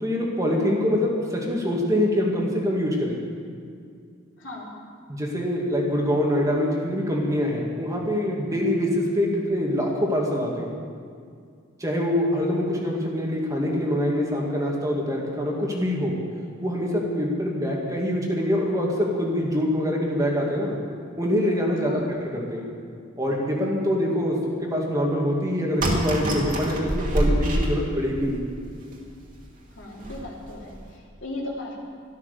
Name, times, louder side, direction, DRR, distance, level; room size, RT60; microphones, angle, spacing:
voice 1, 0.0-3.2 5.1-10.7 11.8-16.1 16.6-20.8 21.2-22.7 23.2-24.4 24.6-28.4, left 1 dB, 15° right, -2 dB, 2.3 m, -24 dB
voice 2, 4.4-4.7 21.8-22.1 29.8-31.8, left 1 dB, 70° left, -3 dB, 3.2 m, -36 dB
sound 1, 25.8-28.3 28.9-29.0 29.3-29.4 30.0-30.3 30.7-30.9, right 1 dB, 45° right, 2.4 m, -25 dB
13.0 x 13.0 x 6.8 m, 2.2 s
head